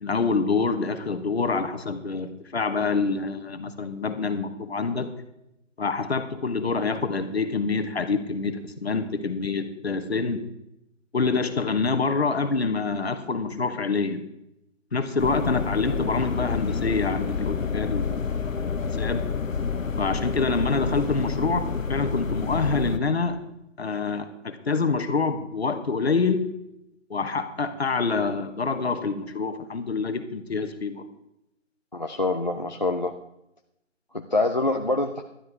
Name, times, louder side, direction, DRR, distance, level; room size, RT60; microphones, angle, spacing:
voice 1, 0.0-5.1 5.8-10.4 11.1-14.2 14.9-18.3 18.9-19.2 20.0-23.4 23.8-26.4 27.1-31.1, left 4 dB, 55° left, 9 dB, 1.3 m, -26 dB
sound 1, 15.2-23.0, left 5 dB, 90° left, 1.1 m, -28 dB
voice 2, 31.9-33.1 34.1-35.2, left 2 dB, 35° left, 4 dB, 0.5 m, -25 dB
12.0 x 10.5 x 4.6 m, 0.83 s
figure-of-eight pair, 170°, 38 cm